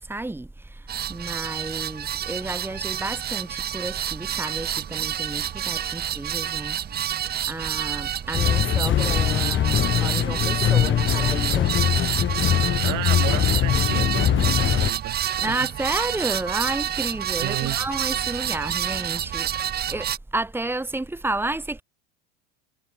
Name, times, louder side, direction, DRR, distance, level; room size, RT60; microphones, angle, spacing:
voice 1, 0.0-7.2 7.5-11.7 15.4-21.8, right 2 dB, 5° right, 3.5 m, -31 dB
sound 1, 0.9-20.2, right 10 dB, 25° right, 0.8 m, -28 dB
sound 2, 8.3-14.9, left 10 dB, 30° left, 2.0 m, -22 dB
voice 2, 12.8-15.6 17.4-17.8, right 21 dB, 55° right, 5.5 m, -32 dB
supercardioid pair, 115°, 36 cm